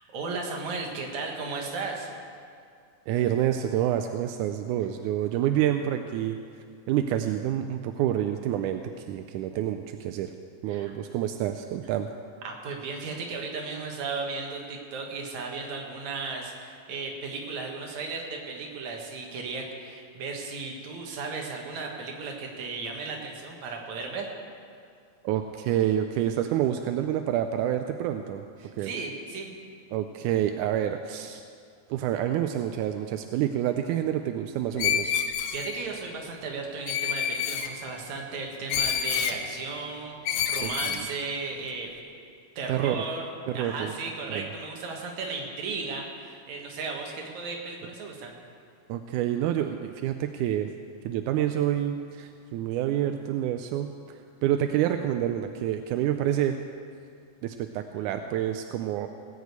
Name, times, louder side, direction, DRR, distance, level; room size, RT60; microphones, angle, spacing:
voice 1, 0.0-2.1 10.7-10.9 12.4-24.3 28.6-29.5 35.5-41.9 42.6-43.3 43.5-48.3, right 4 dB, 70° right, 1 dB, 2.8 m, -35 dB
voice 2, 3.1-6.4 6.9-8.8 9.1-10.3 10.6-12.1 25.2-28.4 28.8-28.9 29.9-31.4 31.9-35.2 40.6-41.1 42.7-43.0 43.5-43.9 44.3-44.5 48.9-50.7 51.1-53.9 54.4-56.6 57.4-59.1, right 11 dB, 90° right, 7 dB, 2.1 m, -28 dB
Screech, 34.8-35.8 36.9-37.7 38.7-39.4 40.3-41.0, left 8 dB, 85° left, 2.3 m, -28 dB
18.5 x 6.4 x 8.2 m, 2.3 s
omnidirectional pair, 3.4 m